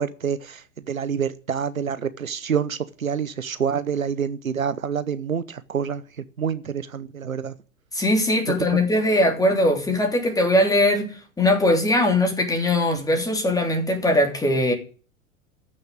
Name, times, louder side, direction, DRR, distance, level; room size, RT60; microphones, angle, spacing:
voice 1, 0.0-6.0 6.4-7.5 8.7-8.8, right 7 dB, 80° right, 0.9 m, -27 dB
voice 2, 7.9-14.7, left 1 dB, 10° left, 3.2 m, -20 dB
14.5 x 6.5 x 8.9 m
figure-of-eight pair, 95°, 41 cm